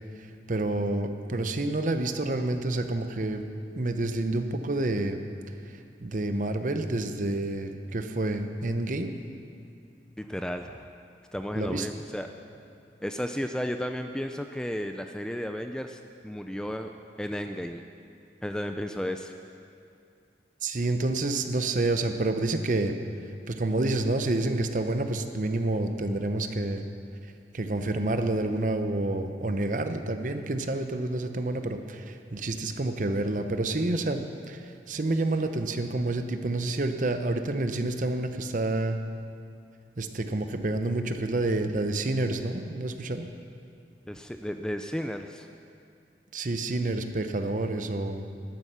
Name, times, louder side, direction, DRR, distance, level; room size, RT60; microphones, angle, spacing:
voice 1, 0.2-3.4 3.8-5.2 6.0-9.1 11.6-11.9 20.6-22.9 23.5-26.8 27.5-39.0 40.0-43.3 46.3-48.2, right 2 dB, 45° right, 7 dB, 0.7 m, -28 dB
voice 2, 10.2-10.9 11.3-12.3 13.0-16.9 17.2-17.8 18.4-19.3 44.1-45.5, equal, 5° left, 6 dB, 0.3 m, -33 dB
12.0 x 9.9 x 6.7 m, 2.5 s
head